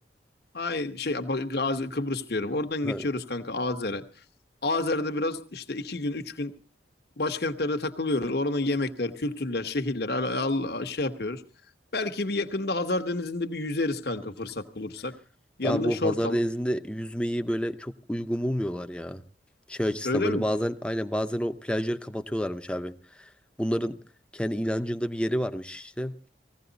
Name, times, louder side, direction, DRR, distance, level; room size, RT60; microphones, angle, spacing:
voice 1, 0.5-4.0 4.6-6.5 7.2-11.4 11.9-15.1 15.6-16.4 20.0-20.4, left 2 dB, 65° left, 7 dB, 1.1 m, -29 dB
voice 2, 15.6-19.2 19.7-22.9 23.2-23.3 23.6-24.0 24.3-26.1, equal, 5° left, 7 dB, 0.7 m, -29 dB
18.5 x 16.0 x 4.0 m, 0.39 s
head